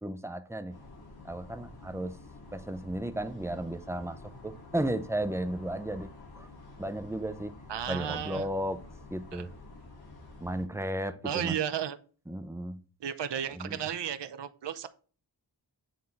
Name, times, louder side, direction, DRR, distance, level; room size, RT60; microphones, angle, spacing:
voice 1, 0.0-0.8 1.2-2.1 2.5-4.2 4.4-6.5 6.8-7.5 7.9-8.8 9.1-9.5 10.4-11.2 11.4-11.6 12.3-12.8 13.6-13.8, right 1 dB, 5° right, 0.7 m, -34 dB
sound 1, 0.7-10.7, left 2 dB, 60° left, 2.4 m, -49 dB
voice 2, 7.7-8.5 9.3-9.5 11.2-12.0 13.0-14.9, right 9 dB, 70° right, 0.6 m, -33 dB
7.7 x 3.7 x 4.1 m
wide cardioid pair, 75°, 44 cm